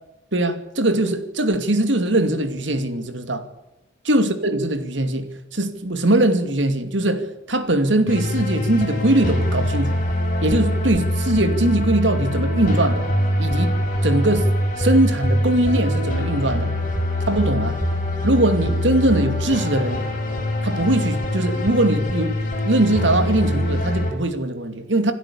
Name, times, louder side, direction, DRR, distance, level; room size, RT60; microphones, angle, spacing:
voice 1, 0.3-3.5 4.1-10.0 10.4-13.1 13.4-13.8 14.0-14.5 14.8-16.7 17.3-17.8 18.2-20.1 20.6-22.3 22.6-25.1, right 1 dB, 70° right, 2.6 m, -21 dB
sound 1, 8.1-24.1, left 1 dB, 45° left, 7.4 m, -23 dB
27.0 x 12.5 x 8.6 m
head